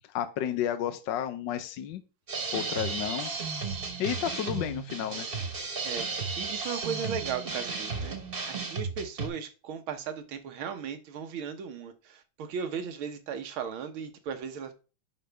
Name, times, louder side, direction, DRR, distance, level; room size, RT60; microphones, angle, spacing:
voice 1, 0.1-2.0 2.5-3.3 4.0-5.3, left 10 dB, 65° left, 1.4 m, -31 dB
sound 1, 2.3-9.3, right 4 dB, 30° right, 1.5 m, -34 dB
voice 2, 6.4-14.8, right 7 dB, 85° right, 1.8 m, -36 dB
10.5 x 5.2 x 3.4 m
omnidirectional pair, 2.2 m